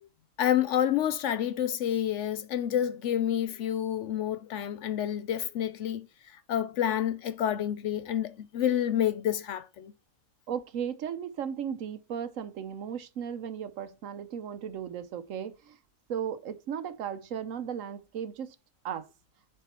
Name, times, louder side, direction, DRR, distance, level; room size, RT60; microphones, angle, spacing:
voice 1, 0.4-6.1 6.3-9.9, left 10 dB, 70° left, 0.8 m, -29 dB
voice 2, 10.5-15.8 16.1-18.6 18.8-19.1, right 8 dB, 70° right, 1.1 m, -36 dB
7.0 x 4.5 x 4.3 m
omnidirectional pair, 1.4 m